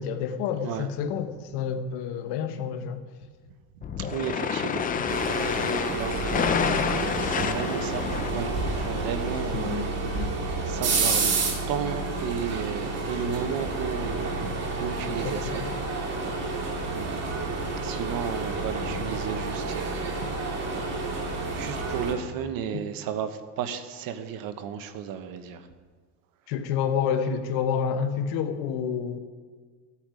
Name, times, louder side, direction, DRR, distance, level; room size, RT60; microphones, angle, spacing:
voice 1, 0.0-3.0 4.0-4.1 9.5-10.3 15.1-15.7 22.7-22.8 26.5-29.2, left 7 dB, 70° left, 8 dB, 1.2 m, -29 dB
sound 1, 3.8-9.4, left 6 dB, 20° left, 0.5 m, -29 dB
voice 2, 4.0-5.1 5.9-10.3 10.7-11.3 11.7-14.5 14.8-15.6 16.5-20.3 20.6-20.9 21.5-25.6, right 8 dB, 55° right, 9 dB, 1.1 m, -34 dB
sound 2, 5.1-22.1, right 3 dB, 35° right, 2.4 m, -30 dB
15.0 x 8.8 x 5.0 m, 1.5 s
cardioid pair, 140°, 41 cm